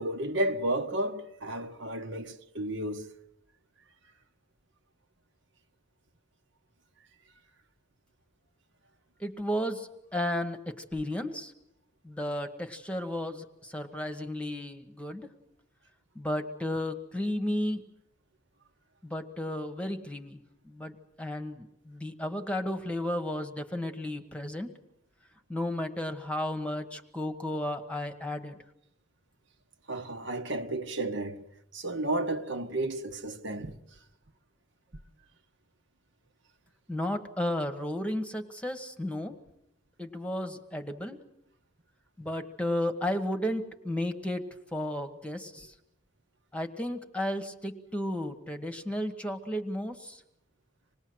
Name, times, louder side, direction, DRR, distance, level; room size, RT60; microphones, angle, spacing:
voice 1, 0.0-3.1 29.9-31.4 31.7-33.8, right 1 dB, 60° right, 1.4 m, -32 dB
voice 2, 9.2-11.5 12.0-15.3 16.1-17.8 19.0-20.4 20.6-24.7 25.5-28.6 36.9-39.4 40.0-41.2 42.2-45.7 46.5-50.2, left 1 dB, 5° left, 1.3 m, -33 dB
26.5 x 20.0 x 7.9 m
head